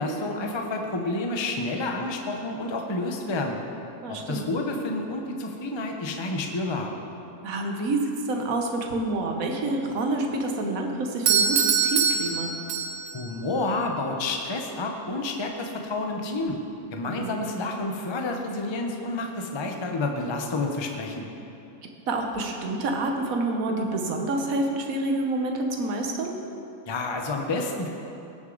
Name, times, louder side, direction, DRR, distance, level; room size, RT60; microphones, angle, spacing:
voice 1, 0.0-3.6 4.1-6.9 13.1-16.6 16.9-21.3 26.9-27.9, left 2 dB, 25° left, 2 dB, 0.6 m, -29 dB
voice 2, 4.0-4.5 7.4-12.5 17.1-17.4 22.1-26.4, right 2 dB, 70° right, 2 dB, 1.4 m, -28 dB
Doorbell, 11.3-13.3, right 6 dB, 85° right, 1.3 m, -23 dB
17.5 x 6.5 x 3.9 m, 2.8 s
omnidirectional pair, 1.5 m